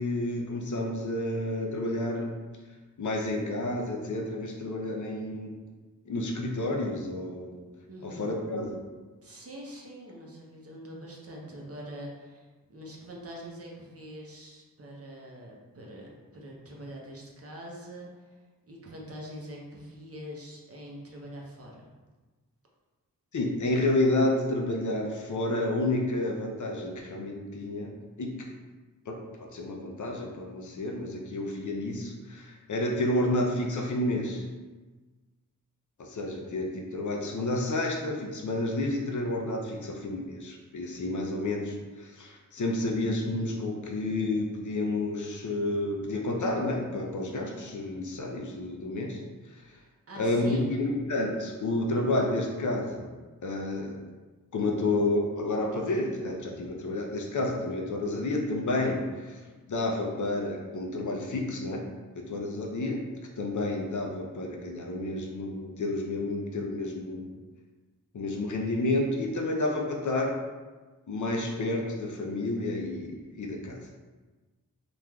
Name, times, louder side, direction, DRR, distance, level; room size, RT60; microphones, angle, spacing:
voice 1, 0.0-2.3 3.0-5.5 6.1-7.5 8.0-8.8 23.3-27.9 28.2-28.5 29.1-29.2 29.5-34.4 36.0-49.2 50.2-53.1 53.4-54.0 54.5-59.4 59.7-61.8 62.2-63.0 63.4-67.3 68.1-70.4 71.1-73.8, left 2 dB, 60° left, 0 dB, 0.5 m, -30 dB
voice 2, 7.9-8.3 9.2-18.1 18.7-21.9 49.8-50.7, equal, 45° right, -2 dB, 0.6 m, -44 dB
3.1 x 2.4 x 2.2 m, 1.3 s
wide cardioid pair, 70°, 34 cm